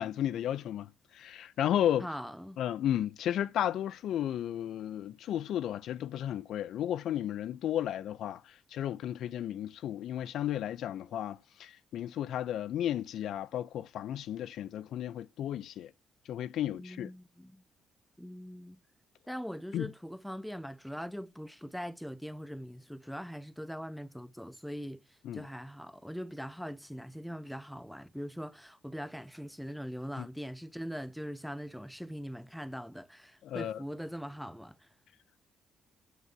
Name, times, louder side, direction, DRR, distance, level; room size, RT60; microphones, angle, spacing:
voice 1, 0.0-2.1 2.6-15.9 16.3-17.1 19.7-19.9 25.2-25.5 30.2-30.3 33.4-33.8, left 11 dB, 75° left, 0.5 m, -33 dB
voice 2, 2.0-2.6 16.8-17.6 18.2-18.8 19.3-25.0 25.3-34.8, equal, ahead, 0.7 m, -41 dB
8.2 x 7.0 x 6.1 m
cardioid pair, 90°, 0 cm